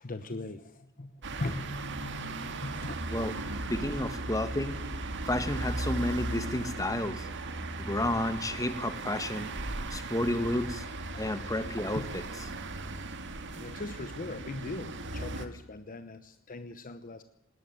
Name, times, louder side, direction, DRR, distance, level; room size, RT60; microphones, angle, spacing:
voice 1, 0.0-3.1 3.9-4.0 11.9-12.0 13.5-17.2, left 2 dB, 40° left, 10 dB, 1.0 m, -40 dB
sound 1, 1.2-15.5, right 2 dB, 55° right, 2.0 m, -37 dB
voice 2, 3.1-4.8 5.3-7.3 7.8-9.5 9.9-10.9 11.2-12.0, left 1 dB, 15° left, 10 dB, 1.7 m, -31 dB
19.0 x 18.5 x 9.3 m, 0.88 s
head